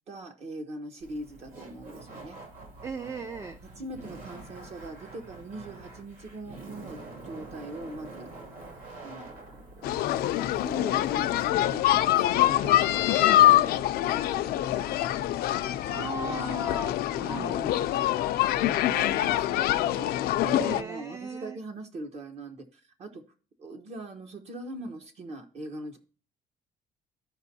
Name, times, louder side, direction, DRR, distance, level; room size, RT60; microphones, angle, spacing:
voice 1, 0.1-2.4 3.8-8.3 9.0-13.1 13.4-15.2 16.2-16.5 17.1-17.9 18.5-23.2 23.6-26.0, right 2 dB, 45° right, 5 dB, 0.9 m, -42 dB
Laughter, 1.0-11.5, right 2 dB, 60° right, 2.4 m, -46 dB
voice 2, 2.8-3.6 12.6-12.8 15.8-17.0 17.2-17.6 20.5-21.6, right 4 dB, 20° right, 9 dB, 0.3 m, -37 dB
sound 1, 9.8-20.8, left 13 dB, 85° left, 0.5 m, -24 dB
14.0 x 5.1 x 2.7 m, 0.41 s
cardioid pair, 155°, 16 cm